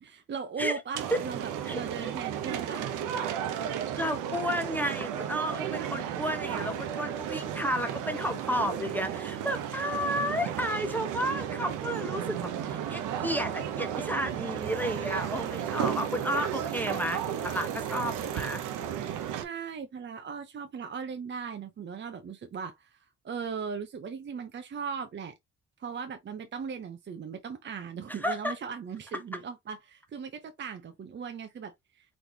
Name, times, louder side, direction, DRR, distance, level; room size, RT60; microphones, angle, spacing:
voice 1, 0.0-2.9 12.5-13.4 19.3-25.3 25.8-32.2, right 6 dB, 40° right, 0.6 m, -38 dB
sound 1, 0.9-19.4, right 9 dB, 90° right, 0.7 m, -34 dB
voice 2, 3.9-18.6 28.1-28.5, equal, 5° left, 0.8 m, -32 dB
4.1 x 3.3 x 2.7 m
cardioid pair, 90°, 30 cm